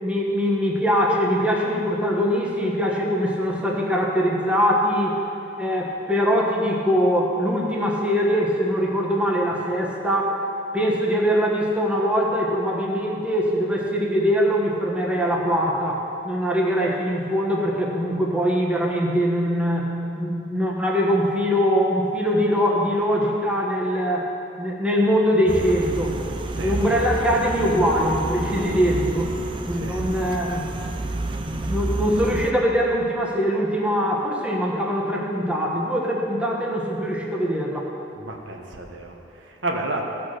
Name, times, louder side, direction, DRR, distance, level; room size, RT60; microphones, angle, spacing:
voice 1, 0.0-5.2 5.6-10.4 10.7-19.9 20.2-24.3 24.6-26.2 26.6-29.3 29.7-30.7 31.7-37.9, equal, 5° right, -2 dB, 1.2 m, -22 dB
sound 1, 25.5-32.5, right 2 dB, 25° right, 0.5 m, -29 dB
voice 2, 29.7-30.0 38.1-40.0, right 2 dB, 75° right, 1 dB, 1.2 m, -31 dB
16.0 x 5.9 x 6.5 m, 2.8 s
head